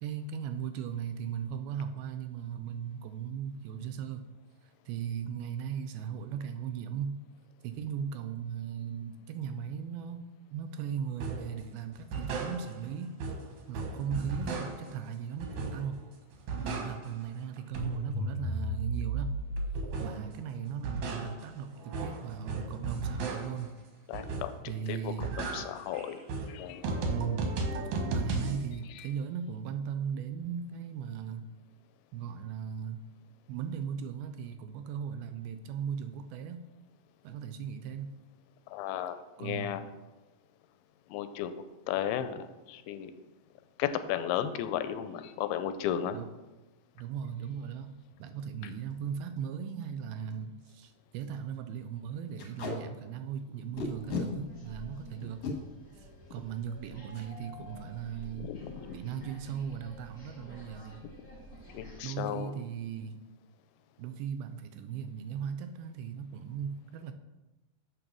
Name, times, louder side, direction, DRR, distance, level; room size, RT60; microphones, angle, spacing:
voice 1, 0.0-4.3 4.6-7.2 7.6-10.2 10.5-13.3 13.7-16.1 16.6-19.3 20.0-23.7 24.7-25.3 27.1-27.5 28.1-31.5 32.1-33.1 33.5-36.7 37.2-38.2 39.4-39.7 46.1-46.3 47.0-47.9 48.2-55.4 56.0-58.5 58.9-61.1 62.0-63.2 64.0-67.1, right 8 dB, 80° right, 8 dB, 2.3 m, -37 dB
sound 1, 11.2-11.5 11.9-12.9 13.2-15.0 15.4-16.0 16.3-17.3 17.6-20.3 20.7-23.7 24.1-24.7 25.0-28.6, right 2 dB, 65° right, 2.0 m, -35 dB
voice 2, 24.1-24.5 24.9-26.2 26.5-26.9 28.9-29.1 38.7-39.8 41.1-43.1 43.8-46.2 58.3-59.0 61.7-62.6, left 10 dB, 85° left, 10 dB, 2.5 m, -35 dB
Packing tape duct tape, 48.7-48.9 49.4-49.5 49.7-49.8 50.3-50.4 50.7-50.8 51.2-51.4 52.4-52.7 53.8-54.3 55.2-55.5 57.1-57.3 57.6-57.8 58.1-58.5, left 4 dB, 55° left, 2.0 m, -36 dB
sound 2, 53.7-62.0, equal, 40° left, 1.9 m, -51 dB
7.0 x 5.3 x 6.1 m, 1.1 s
omnidirectional pair, 4.5 m